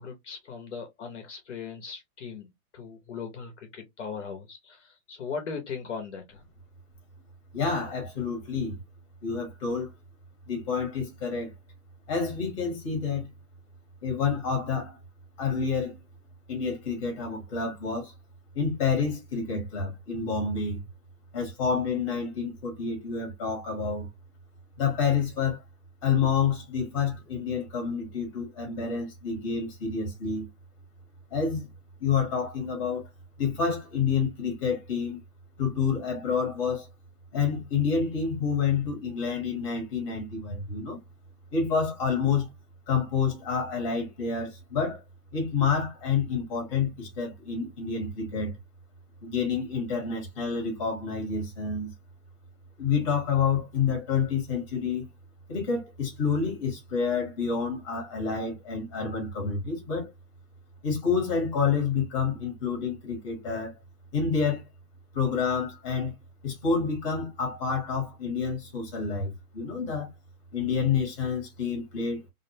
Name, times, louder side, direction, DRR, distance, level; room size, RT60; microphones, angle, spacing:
voice 1, 0.0-6.4, left 5 dB, 50° left, 0.7 m, -39 dB
voice 2, 7.5-8.8 9.2-9.9 10.5-11.5 12.1-13.3 14.0-15.0 15.4-15.9 16.5-18.1 18.5-20.8 21.3-24.1 24.8-25.6 26.0-30.5 31.3-31.7 32.0-33.1 33.4-35.2 35.6-36.9 37.3-41.0 41.5-42.5 42.9-45.0 45.3-48.6 49.2-51.9 52.8-55.0 55.5-60.1 60.8-63.7 64.1-64.6 65.1-66.1 66.4-70.1 70.5-72.3, left 5 dB, 20° left, 0.9 m, -28 dB
2.5 x 2.0 x 2.5 m
hypercardioid pair, 175°, 45 cm